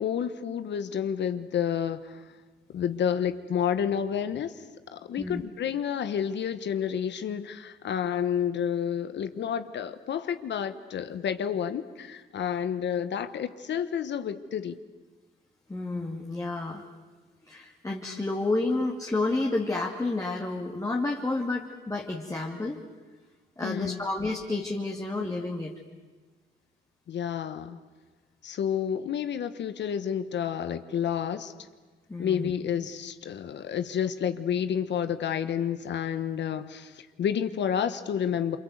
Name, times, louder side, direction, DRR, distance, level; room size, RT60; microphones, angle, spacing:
voice 1, 0.0-2.3 2.7-4.6 4.9-14.8 23.6-24.0 27.1-27.8 28.4-31.5 32.2-38.6, left 8 dB, 65° left, 10 dB, 1.3 m, -30 dB
voice 2, 15.7-16.8 17.5-22.8 23.6-25.7 32.1-32.5, left 2 dB, 15° left, -2 dB, 2.5 m, -30 dB
27.5 x 25.0 x 8.1 m, 1.3 s
cardioid pair, 90°, 20 cm